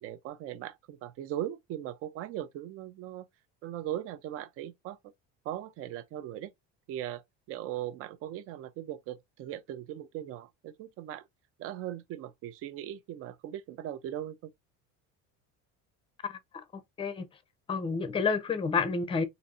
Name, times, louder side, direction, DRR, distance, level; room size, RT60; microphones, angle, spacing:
voice 1, 0.0-3.3 3.6-5.0 5.4-6.5 6.9-11.2 11.6-14.5, right 12 dB, 45° right, 0.6 m, -39 dB
voice 2, 16.2-17.2 17.7-19.2, left 5 dB, 15° left, 0.6 m, -30 dB
4.0 x 2.7 x 4.1 m
cardioid pair, 170°, 33 cm